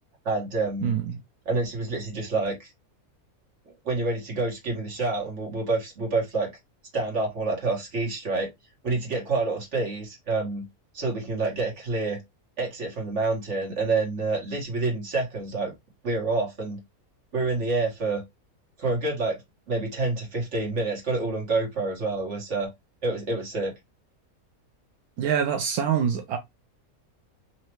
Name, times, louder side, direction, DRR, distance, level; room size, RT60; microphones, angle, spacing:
voice 1, 0.3-0.9 1.5-2.7 3.9-6.5 6.9-8.5 8.8-10.6 10.9-12.2 12.6-15.7 16.0-16.8 17.3-18.2 18.8-19.4 19.7-22.7 23.0-23.7, right 3 dB, 55° right, 1.9 m, -27 dB
voice 2, 25.2-26.4, right 8 dB, 85° right, 1.1 m, -24 dB
4.2 x 2.9 x 3.0 m
omnidirectional pair, 1.5 m